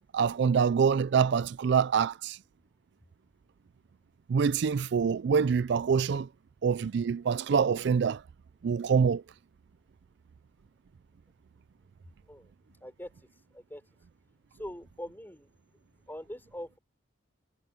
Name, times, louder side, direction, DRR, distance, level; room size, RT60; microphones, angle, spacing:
voice 1, 0.1-2.4 4.3-6.3 6.6-8.2 8.6-9.2, right 6 dB, 60° right, 0.4 m, -25 dB
voice 2, 12.8-13.1 13.5-13.8 14.6-15.5 16.1-16.8, equal, 10° left, 4.3 m, -42 dB
head